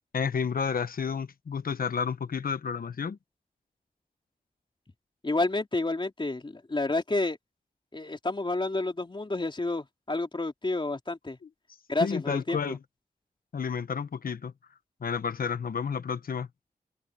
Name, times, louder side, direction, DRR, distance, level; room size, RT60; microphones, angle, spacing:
voice 1, 0.1-3.2 12.0-12.8 13.5-14.5 15.0-16.5, left 6 dB, 80° left, 1.1 m, -31 dB
voice 2, 5.2-7.4 7.9-11.4 11.9-12.8, left 2 dB, 35° left, 3.5 m, -30 dB
open air
wide cardioid pair, 70°, 15 cm